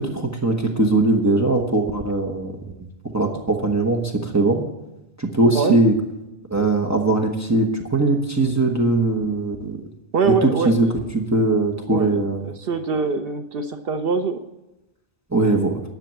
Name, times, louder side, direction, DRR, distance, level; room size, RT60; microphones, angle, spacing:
voice 1, 0.0-2.6 3.1-4.6 5.2-5.9 6.5-9.8 10.2-10.9 11.1-12.4 15.3-15.8, right 2 dB, 15° right, 1 dB, 1.0 m, -20 dB
voice 2, 10.1-10.9 11.9-14.4, right 4 dB, 65° right, 8 dB, 0.9 m, -24 dB
10.5 x 6.8 x 7.6 m, 0.97 s
omnidirectional pair, 1.1 m